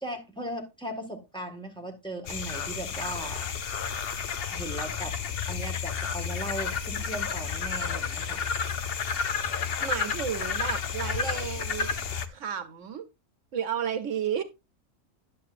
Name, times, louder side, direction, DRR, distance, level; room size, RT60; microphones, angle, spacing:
voice 1, 0.0-3.4 4.5-5.2 5.5-8.4, right 1 dB, 5° left, 1.5 m, -37 dB
sound 1, 2.3-12.3, left 6 dB, 55° left, 0.9 m, -31 dB
voice 2, 9.8-12.0 12.3-13.0 13.5-14.4, right 8 dB, 70° right, 1.1 m, -32 dB
10.5 x 8.5 x 2.5 m
omnidirectional pair, 1.3 m